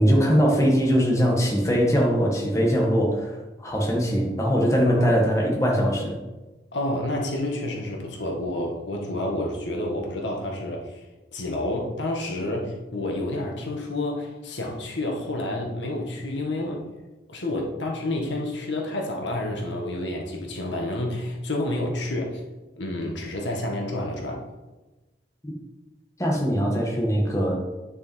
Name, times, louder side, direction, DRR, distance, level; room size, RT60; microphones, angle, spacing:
voice 1, 0.0-6.2 26.2-27.6, equal, 15° left, -2 dB, 1.7 m, -21 dB
voice 2, 6.7-11.0 11.3-16.8 17.3-22.4 22.8-24.5, left 1 dB, 90° left, 0 dB, 1.9 m, -29 dB
9.9 x 6.1 x 4.6 m, 1.1 s
head